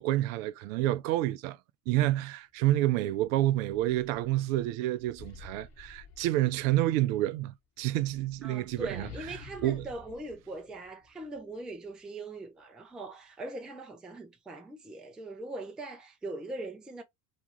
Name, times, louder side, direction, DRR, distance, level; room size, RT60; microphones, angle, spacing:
voice 1, 0.0-1.6 1.9-9.1 9.6-9.9, right 15 dB, 60° right, 0.5 m, -28 dB
sound 1, 3.2-6.8 7.8-11.4, left 5 dB, 35° left, 1.0 m, -51 dB
voice 2, 8.4-17.0, right 2 dB, ahead, 0.3 m, -41 dB
2.9 x 2.3 x 2.9 m
hypercardioid pair, 85°, 47 cm